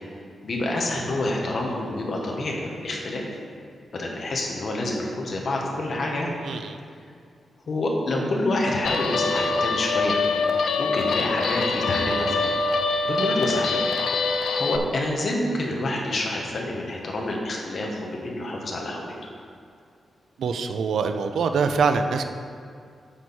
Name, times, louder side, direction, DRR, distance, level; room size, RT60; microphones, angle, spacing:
voice 1, 0.4-3.3 3.9-6.3 7.7-10.2 10.8-12.5 13.0-13.9 14.5-19.1, left 1 dB, 45° left, -1 dB, 1.2 m, -27 dB
voice 2, 6.5-6.8 20.4-22.3, right 5 dB, 85° right, 7 dB, 0.5 m, -24 dB
Guitar, 8.8-14.8, left 4 dB, 70° left, 0.5 m, -24 dB
9.0 x 6.3 x 4.2 m, 2.3 s
wide cardioid pair, 175°, 0 cm